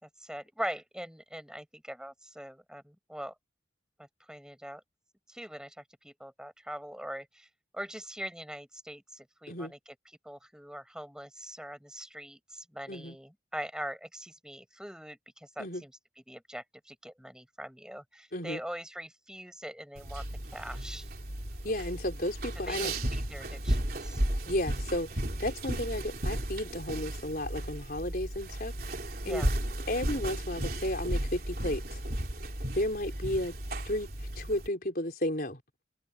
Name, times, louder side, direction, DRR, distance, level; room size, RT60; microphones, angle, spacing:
voice 1, 0.2-3.3 4.0-4.8 5.3-5.8 6.0-7.5 7.7-9.8 10.3-15.9 16.3-20.2 20.5-21.1 22.7-24.2 29.2-29.5, equal, 5° right, 5.4 m, -42 dB
sound 1, 20.0-34.7, right 1 dB, 50° right, 3.7 m, -34 dB
voice 2, 21.6-22.9 24.5-28.7 29.2-29.4 29.9-32.0 32.7-33.6 33.8-34.1 34.4-35.6, left 1 dB, 50° left, 4.4 m, -33 dB
open air
head